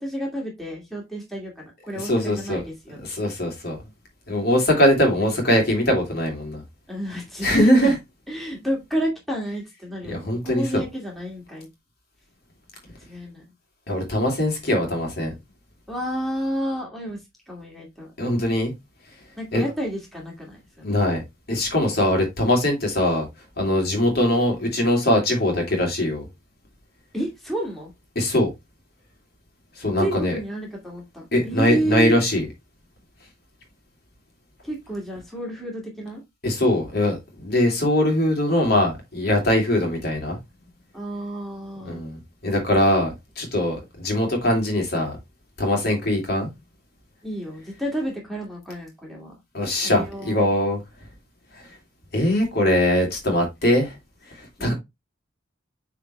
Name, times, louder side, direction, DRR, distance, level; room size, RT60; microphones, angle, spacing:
voice 1, 0.0-3.0 5.2-5.3 6.9-8.0 8.3-11.7 13.1-13.4 15.9-17.2 17.5-18.1 19.4-20.9 27.1-27.9 30.0-32.2 34.6-36.2 40.9-42.1 47.2-49.3 49.8-50.4 54.6-54.7, right 1 dB, ahead, 2.3 m, -30 dB
voice 2, 1.9-2.6 3.0-3.8 4.3-6.6 7.4-7.9 10.1-10.8 13.9-15.3 18.2-18.7 19.5-19.6 20.8-21.2 21.5-23.2 23.6-26.3 28.1-28.5 29.8-30.3 31.3-32.5 36.4-40.4 41.8-42.2 42.4-45.2 45.6-46.5 49.5-50.8 52.1-53.9 54.4-54.7, left 1 dB, 50° left, 3.0 m, -21 dB
9.1 x 3.9 x 3.2 m
head